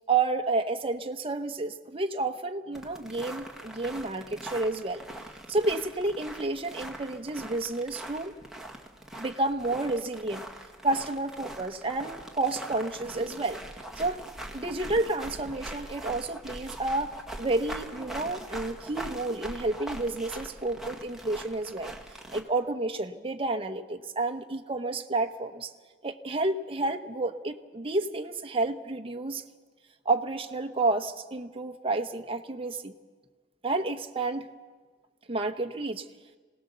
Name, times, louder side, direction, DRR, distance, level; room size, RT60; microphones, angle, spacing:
voice 1, 0.0-5.0 5.5-8.3 9.1-10.5 10.8-13.6 14.0-14.2 14.5-17.1 17.4-21.9 22.3-25.7 26.0-29.4 30.0-32.9 33.6-34.5 35.3-36.1, right 2 dB, 30° right, 5 dB, 1.0 m, -30 dB
sound 1, 2.7-22.4, right 1 dB, ahead, 1.7 m, -42 dB
26.5 x 18.0 x 6.8 m, 1.4 s
head